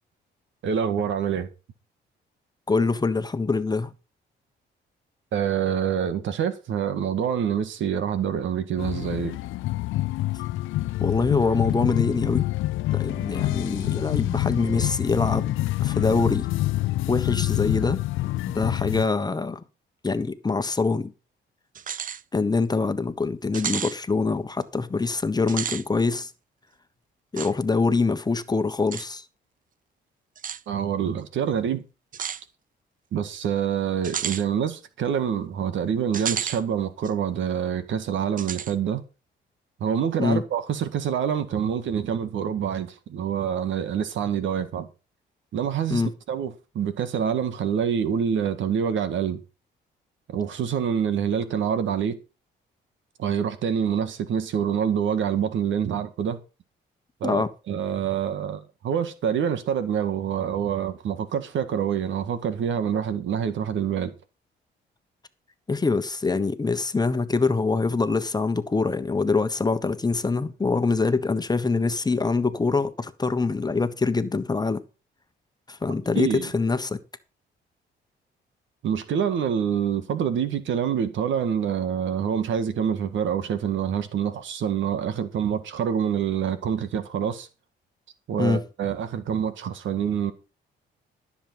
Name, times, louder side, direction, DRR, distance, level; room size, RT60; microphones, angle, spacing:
voice 1, 0.6-1.5 5.3-9.4 30.7-31.8 33.1-39.0 39.8-44.9 45.5-49.4 50.3-52.2 53.2-56.4 57.2-64.1 76.1-76.5 78.8-87.5 88.3-90.3, right 8 dB, 75° right, 1.8 m, -26 dB
voice 2, 2.7-3.9 11.0-12.5 12.9-16.5 17.1-18.0 18.5-19.6 20.0-21.1 22.3-26.3 27.3-29.2 40.2-40.4 45.9-46.1 57.2-57.5 65.7-74.8 75.7-77.0 88.4-88.6, left 4 dB, 20° left, 1.2 m, -24 dB
sound 1, 8.8-19.1, left 16 dB, 85° left, 0.5 m, -26 dB
sound 2, 21.8-22.2 22.6-22.7 23.5-24.0 25.4-25.8 27.4-27.5 28.9-29.1 30.4-30.6 32.1-32.4 34.0-34.4 36.1-36.6 37.0-37.1 38.4-38.7, right 8 dB, 45° right, 0.6 m, -31 dB
14.0 x 7.3 x 5.5 m
cardioid pair, 90°, 20 cm